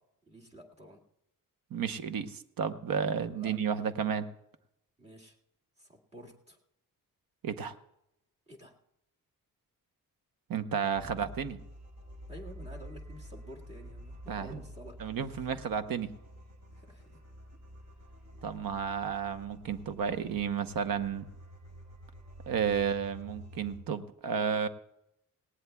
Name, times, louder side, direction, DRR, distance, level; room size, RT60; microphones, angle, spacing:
voice 1, 0.3-1.0 3.3-3.5 5.0-5.4 5.8-6.6 8.5-8.7 12.3-15.5 16.7-17.0, right 1 dB, 20° right, -1 dB, 1.9 m, -50 dB
voice 2, 1.7-4.3 7.4-7.7 10.5-11.6 14.3-14.6 15.0-16.1 18.4-21.2 22.5-24.7, right 7 dB, 90° right, 10 dB, 0.9 m, -32 dB
sound 1, 10.9-23.8, equal, 50° right, 4.2 m, -49 dB
19.0 x 18.0 x 2.3 m, 0.85 s
wide cardioid pair, 175°, 34 cm